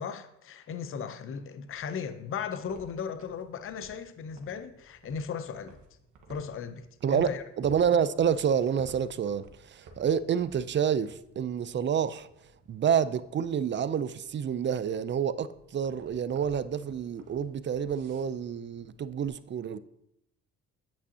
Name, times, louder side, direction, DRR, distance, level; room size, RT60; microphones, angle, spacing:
voice 1, 0.0-5.8 6.3-6.9 7.1-7.4, left 6 dB, 45° left, 0.7 m, -36 dB
sound 1, 1.6-19.3, right 2 dB, 80° right, 1.4 m, -56 dB
voice 2, 7.0-12.3 12.7-19.8, right 8 dB, 40° right, 0.5 m, -28 dB
8.5 x 8.1 x 2.8 m
cardioid pair, 75°, 30 cm